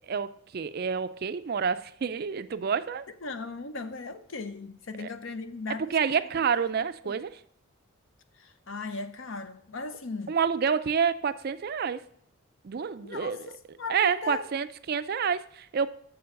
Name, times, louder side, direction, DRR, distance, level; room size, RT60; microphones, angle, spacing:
voice 1, 0.1-3.1 5.0-5.1 5.8-7.4 10.3-12.0 12.6-13.5 13.9-15.9, right 6 dB, 45° right, 0.4 m, -28 dB
voice 2, 3.2-6.2 6.8-7.1 8.3-10.4 13.0-14.5, left 3 dB, 60° left, 0.7 m, -38 dB
7.0 x 6.9 x 6.5 m
head